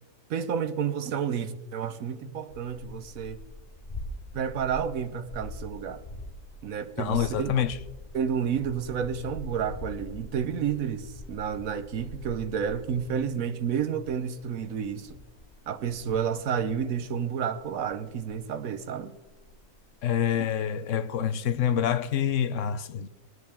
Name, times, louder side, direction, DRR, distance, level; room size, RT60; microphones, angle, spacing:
voice 1, 0.3-3.4 4.3-6.0 6.6-7.5 8.1-15.2 15.7-19.2 20.9-21.0, right 7 dB, 75° right, 1.2 m, -30 dB
sound 1, 2.5-20.3 20.6-20.7 21.1-22.0, left 1 dB, 35° left, 0.9 m, -44 dB
voice 2, 7.0-7.8 20.0-23.1, left 9 dB, 65° left, 0.9 m, -27 dB
22.0 x 9.5 x 3.5 m
omnidirectional pair, 1.5 m